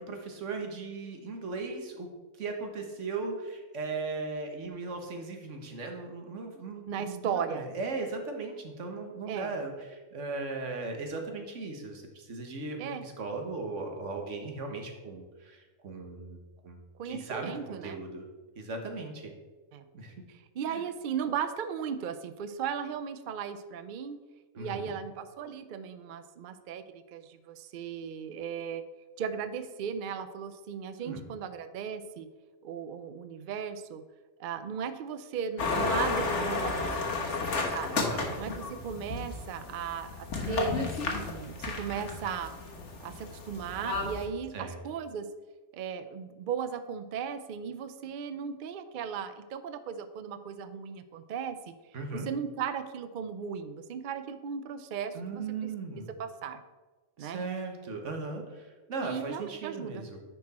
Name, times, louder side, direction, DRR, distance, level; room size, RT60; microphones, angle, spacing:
voice 1, 0.0-2.1 2.4-18.3 18.6-19.3 19.9-20.1 20.6-20.8 24.5-24.9 31.0-31.2 37.9-38.4 44.5-44.8 51.9-52.3 55.1-56.1 57.2-60.2, right 3 dB, 80° right, 3 dB, 1.5 m, -38 dB
voice 2, 6.9-7.6 9.3-9.5 12.8-13.0 17.0-18.0 19.7-19.8 20.6-24.2 24.6-28.8 29.2-32.3 32.6-34.0 34.4-38.0 38.4-42.5 43.0-45.3 45.7-51.7 52.1-55.4 56.2-56.6 57.2-57.4 59.0-60.0, right 7 dB, 60° right, 10 dB, 0.6 m, -36 dB
sound 1, 35.6-44.3, left 3 dB, 75° left, 1.5 m, -32 dB
10.5 x 4.6 x 4.2 m, 1.3 s
omnidirectional pair, 1.2 m